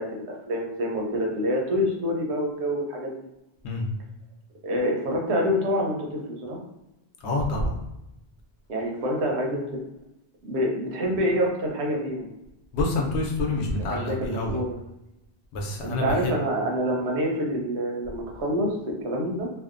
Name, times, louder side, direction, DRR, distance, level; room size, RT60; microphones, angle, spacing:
voice 1, 0.0-3.1 4.6-6.6 8.7-9.7 10.4-12.3 13.8-14.8 15.8-19.5, equal, 85° right, 0 dB, 0.9 m, -27 dB
voice 2, 7.2-7.8 12.7-14.6 15.5-16.4, left 2 dB, 90° left, 0 dB, 0.9 m, -27 dB
2.6 x 2.1 x 2.4 m, 0.91 s
omnidirectional pair, 1.1 m